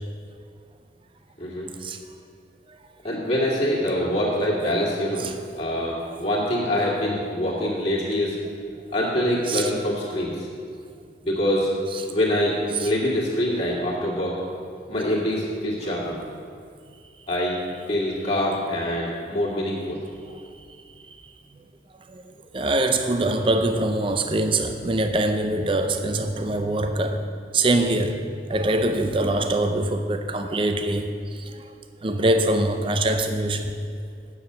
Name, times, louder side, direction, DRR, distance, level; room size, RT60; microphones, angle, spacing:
voice 1, 3.0-5.3 5.5-8.4 8.9-10.5 11.2-11.7 12.1-14.4 14.9-16.2 17.3-17.6 17.9-20.0 27.0-27.2, left 1 dB, 35° left, 2.1 m, -25 dB
voice 2, 22.5-27.2 27.5-31.7 32.0-33.7, right 2 dB, 30° right, 0.5 m, -24 dB
8.7 x 7.2 x 6.8 m
head